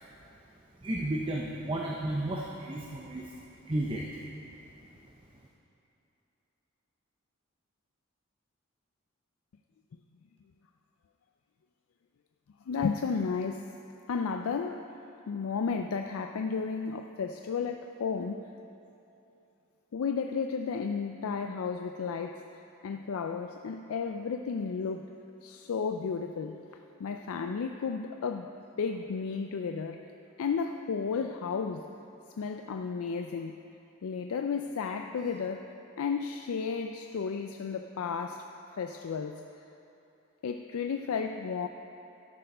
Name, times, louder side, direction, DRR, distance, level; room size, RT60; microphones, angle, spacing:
voice 1, 0.8-3.4 3.7-4.1, right 1 dB, 25° right, -1 dB, 0.6 m, -33 dB
voice 2, 12.7-13.6 14.1-14.8 15.3-18.5 19.9-25.1 25.4-26.6 27.0-28.5 28.8-30.0 30.4-31.9 32.4-33.6 34.0-35.7 36.0-38.4 38.7-39.4 40.4-41.7, left 5 dB, 70° left, 5 dB, 0.4 m, -33 dB
13.0 x 6.7 x 5.4 m, 2.9 s
head